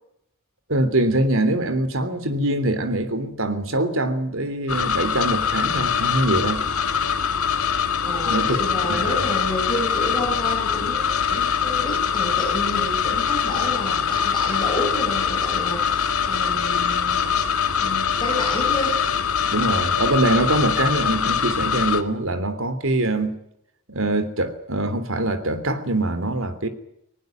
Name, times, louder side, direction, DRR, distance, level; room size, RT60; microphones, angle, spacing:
voice 1, 0.7-6.6 8.3-8.6 8.9-9.2 19.5-23.4 23.9-26.7, right 1 dB, 60° right, 11 dB, 3.2 m, -23 dB
sound 1, 4.7-22.0, left 7 dB, 75° left, 2.1 m, -23 dB
voice 2, 8.0-17.5 17.8-19.0, left 1 dB, 20° left, -1 dB, 7.4 m, -30 dB
20.0 x 19.0 x 9.2 m, 0.76 s
head